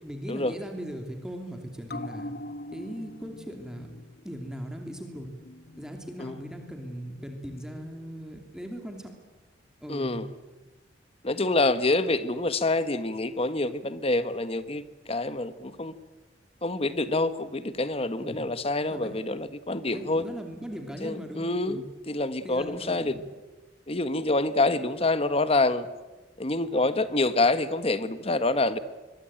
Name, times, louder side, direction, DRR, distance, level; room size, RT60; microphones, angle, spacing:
voice 1, 0.0-2.3 2.7-3.9 4.2-5.3 5.8-9.1 9.8-10.2 12.1-12.2 18.2-18.4 18.9-19.1 19.9-21.8 22.4-23.2, equal, 5° right, 3 dB, 2.9 m, -39 dB
sound 1, 1.9-8.8 9.1-9.2, left 1 dB, 60° left, 1.2 m, -44 dB
voice 2, 9.9-10.3 11.2-15.9 16.6-20.2 21.0-23.1 23.9-25.9 26.4-28.8, left 2 dB, 35° left, 12 dB, 1.4 m, -27 dB
25.0 x 22.5 x 8.9 m, 1.2 s
head